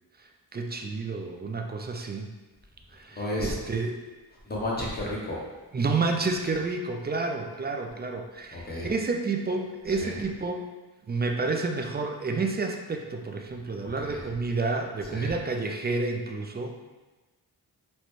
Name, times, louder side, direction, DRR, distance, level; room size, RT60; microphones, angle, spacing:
voice 1, 0.2-2.3 2.9-4.0 5.7-10.7 11.1-16.8, right 3 dB, 25° right, 3 dB, 0.4 m, -30 dB
voice 2, 3.1-3.5 4.4-5.4 8.5-8.9 10.0-10.1 13.8-14.2 15.1-15.3, left 1 dB, 25° left, -4 dB, 1.0 m, -32 dB
4.0 x 2.1 x 3.1 m, 1.2 s
cardioid pair, 65°, 40 cm